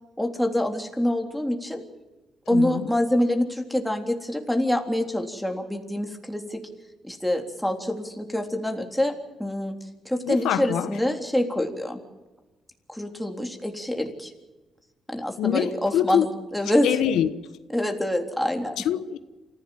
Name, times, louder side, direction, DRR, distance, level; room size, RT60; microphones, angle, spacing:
voice 1, 0.2-1.8 2.5-6.6 7.0-9.1 9.4-9.8 10.1-12.0 12.9-14.3 15.1-16.9 17.7-18.8, left 1 dB, 5° left, 3.6 m, -26 dB
voice 2, 2.5-2.9 10.3-10.9 15.4-16.2 16.8-17.3 18.8-19.2, left 10 dB, 85° left, 1.2 m, -24 dB
28.0 x 15.5 x 7.6 m
cardioid pair, 90°, 0 cm